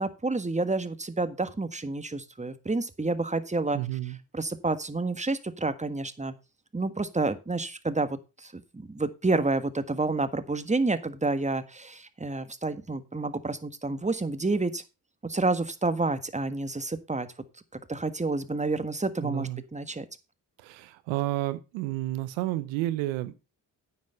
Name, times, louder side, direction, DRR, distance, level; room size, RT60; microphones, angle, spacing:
voice 1, 0.0-3.8 4.3-6.3 6.7-14.8 15.2-17.3 17.9-20.1, right 3 dB, 15° right, 11 dB, 1.6 m, -29 dB
voice 2, 3.7-4.2 19.2-19.6 20.6-23.4, right 16 dB, 85° right, 14 dB, 0.9 m, -31 dB
9.3 x 7.1 x 5.5 m, 0.28 s
hypercardioid pair, 45°, 45 cm